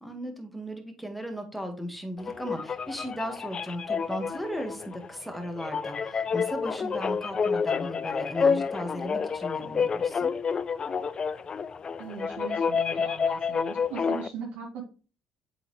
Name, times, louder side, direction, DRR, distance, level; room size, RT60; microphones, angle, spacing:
voice 1, 0.0-10.3, equal, ahead, 4 dB, 1.8 m, -36 dB
sound 1, 2.2-14.3, left 6 dB, 40° left, 0.4 m, -29 dB
voice 2, 12.0-14.8, right 6 dB, 70° right, -2 dB, 2.1 m, -39 dB
8.0 x 3.8 x 3.2 m, 0.36 s
hypercardioid pair, 65°, 2 cm